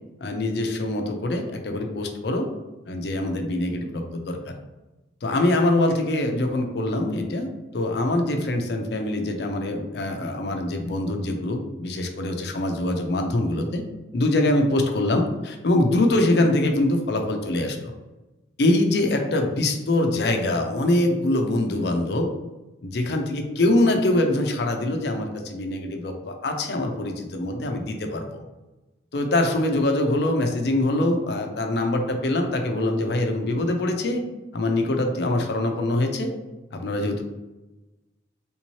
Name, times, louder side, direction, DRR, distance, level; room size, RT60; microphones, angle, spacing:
voice 1, 0.2-2.5 2.9-4.5 5.2-7.5 7.7-13.8 14.1-17.9 18.6-22.3 22.8-28.4 29.1-34.2 34.5-36.3 36.7-37.2, left 1 dB, 70° left, 4 dB, 0.5 m, -24 dB
3.5 x 2.8 x 3.0 m, 1.1 s
head